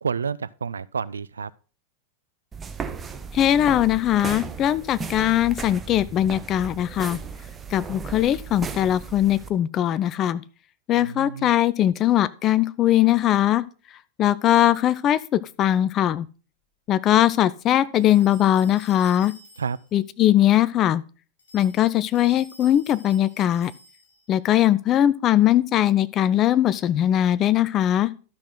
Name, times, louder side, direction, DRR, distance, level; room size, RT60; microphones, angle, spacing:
voice 1, 0.0-1.5 10.9-11.5 19.6-19.8, right 6 dB, 70° right, 0.3 m, -30 dB
sound 1, 2.5-9.5, right 5 dB, 20° right, 0.9 m, -36 dB
voice 2, 3.3-7.2 7.7-10.4 10.9-13.6 14.2-16.3 16.9-19.3 19.9-21.0 21.5-23.7 24.3-28.1, left 12 dB, 30° left, 0.5 m, -20 dB
sound 2, 18.0-19.9 21.4-24.3, left 2 dB, 65° left, 3.4 m, -50 dB
12.0 x 6.1 x 3.8 m
figure-of-eight pair, 90°, 0 cm